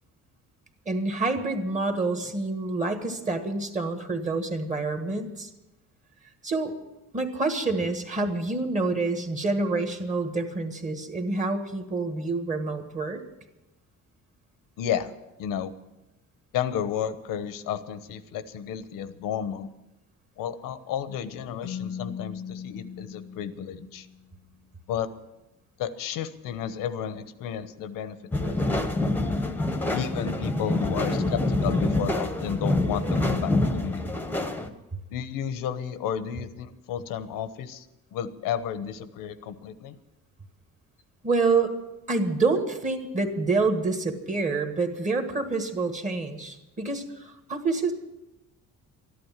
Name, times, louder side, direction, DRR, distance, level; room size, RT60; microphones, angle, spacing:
voice 1, 0.8-5.5 6.4-6.7 7.1-13.2 41.2-41.7 42.1-47.9, right 3 dB, 20° right, 6 dB, 1.6 m, -27 dB
voice 2, 14.8-15.1 15.4-15.7 16.5-19.7 20.4-24.1 24.9-25.1 25.8-28.9 29.9-34.0 35.1-37.9 38.1-40.0, left 9 dB, 85° left, 13 dB, 1.1 m, -32 dB
Keyboard (musical), 21.6-24.4, left 8 dB, 40° left, 0.8 m, -39 dB
sound 1, 28.3-34.7, left 2 dB, 5° left, 1.0 m, -26 dB
13.5 x 11.5 x 7.4 m, 0.97 s
cardioid pair, 150°, 33 cm